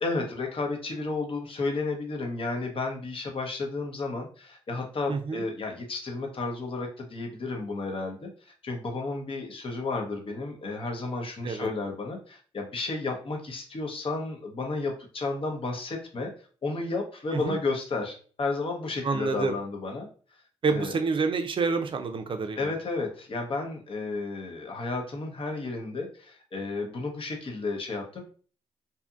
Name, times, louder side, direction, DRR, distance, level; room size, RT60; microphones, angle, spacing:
voice 1, 0.0-16.3 16.6-20.1 20.7-21.0 22.6-28.2, left 3 dB, 45° left, 2 dB, 0.8 m, -32 dB
voice 2, 5.1-5.4 11.4-11.7 17.3-17.6 19.0-19.5 20.6-22.7, right 4 dB, 45° right, 6 dB, 0.5 m, -28 dB
2.7 x 2.5 x 2.3 m, 0.42 s
supercardioid pair, 55°, 13 cm